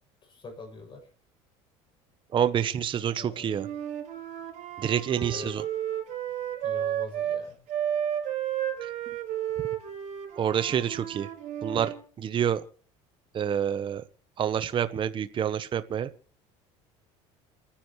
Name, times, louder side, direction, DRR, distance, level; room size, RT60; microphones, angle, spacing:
voice 1, 0.2-1.1 3.2-3.7 5.3-5.5 6.6-7.6, left 4 dB, 35° left, 2 dB, 7.1 m, -44 dB
voice 2, 2.3-3.7 4.8-5.6 8.8-8.9 10.4-11.3 11.6-12.6 13.3-14.0 14.4-16.1, right 9 dB, 35° right, 11 dB, 0.8 m, -27 dB
Wind instrument woodwind instrument, 3.5-7.4 7.7-12.0, right 10 dB, 55° right, 4.5 m, -32 dB
29.0 x 10.0 x 3.1 m, 0.42 s
supercardioid pair, 110°, 15 cm